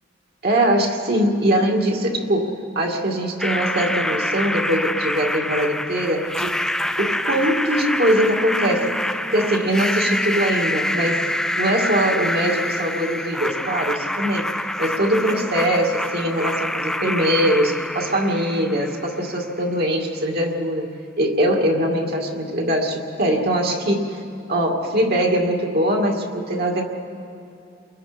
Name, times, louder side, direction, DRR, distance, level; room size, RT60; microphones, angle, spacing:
voice 1, 0.4-6.6 7.0-11.2 11.6-14.5 14.8-20.9 21.2-24.2 24.5-26.8, equal, 55° right, 0 dB, 2.2 m, -22 dB
sound 1, 3.4-19.3, left 1 dB, 5° left, 0.5 m, -26 dB
29.5 x 22.5 x 5.2 m, 2.6 s
head